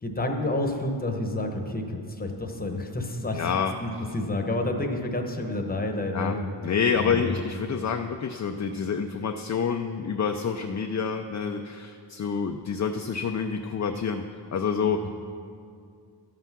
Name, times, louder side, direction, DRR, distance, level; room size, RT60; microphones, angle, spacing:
voice 1, 0.0-3.4 3.8-6.5 7.0-7.4 15.0-15.1, left 2 dB, 20° left, 3 dB, 0.9 m, -29 dB
voice 2, 3.3-3.7 6.1-6.4 6.6-14.2 14.5-15.0, left 6 dB, 40° left, 5 dB, 0.4 m, -27 dB
13.5 x 5.7 x 6.0 m, 2.3 s
wide cardioid pair, 145°, 46 cm